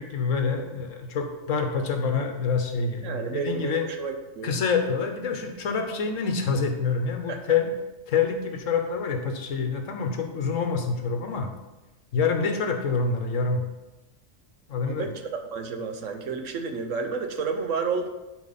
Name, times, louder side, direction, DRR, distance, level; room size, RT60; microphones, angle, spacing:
voice 1, 0.0-3.9 4.4-7.7 8.1-11.5 12.1-13.6 14.7-15.0, left 5 dB, 75° left, 5 dB, 1.3 m, -26 dB
voice 2, 3.0-4.5 7.3-7.4 14.8-18.1, right 5 dB, 70° right, 6 dB, 1.2 m, -31 dB
10.5 x 4.6 x 4.2 m, 1.1 s
omnidirectional pair, 1.4 m